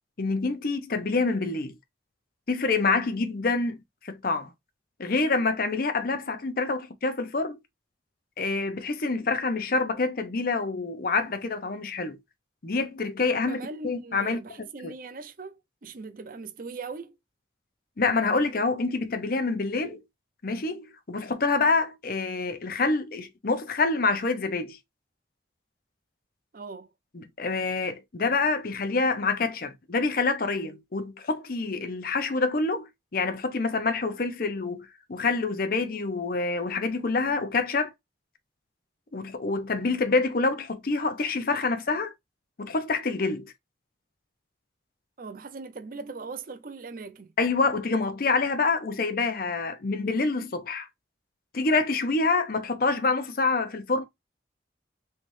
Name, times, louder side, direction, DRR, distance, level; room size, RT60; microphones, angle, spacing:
voice 1, 0.2-1.8 2.5-4.5 5.0-7.6 8.4-12.2 12.6-14.4 14.8-14.9 18.0-20.0 20.4-24.8 27.1-37.9 39.1-42.1 42.6-43.5 47.4-50.9 51.5-54.0, left 3 dB, 50° left, 0.7 m, -27 dB
voice 2, 13.2-17.2 26.5-26.9 45.2-47.3, right 4 dB, 50° right, 0.6 m, -40 dB
3.3 x 3.1 x 2.6 m
head